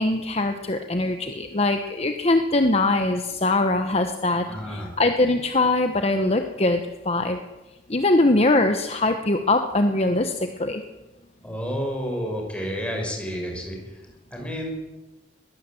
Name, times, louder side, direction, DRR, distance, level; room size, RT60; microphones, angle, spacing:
voice 1, 0.0-7.4 7.9-10.8, left 2 dB, 35° left, 6 dB, 1.1 m, -22 dB
voice 2, 4.5-4.9 11.4-13.8 14.3-14.7, equal, 5° left, 1 dB, 5.9 m, -30 dB
21.0 x 16.0 x 7.8 m, 1.1 s
head